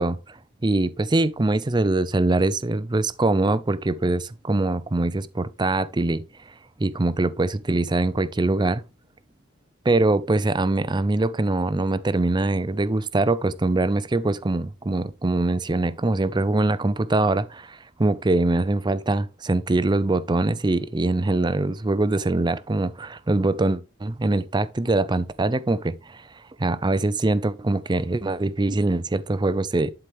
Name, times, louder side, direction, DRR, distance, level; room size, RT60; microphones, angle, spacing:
voice 1, 0.0-6.2 6.8-8.8 9.8-29.9, right 2 dB, 20° right, 0.5 m, -23 dB
11.5 x 4.5 x 3.5 m
head